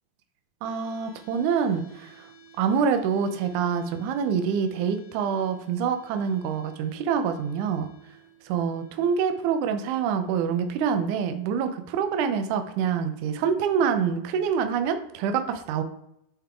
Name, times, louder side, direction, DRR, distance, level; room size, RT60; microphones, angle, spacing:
sound 1, 0.6-14.6, right 4 dB, 65° left, 2.1 m, -56 dB
voice 1, 0.6-2.3 2.6-7.9 8.5-15.8, right 7 dB, 75° right, 8 dB, 2.0 m, -26 dB
8.7 x 3.6 x 3.6 m, 0.80 s
omnidirectional pair, 3.8 m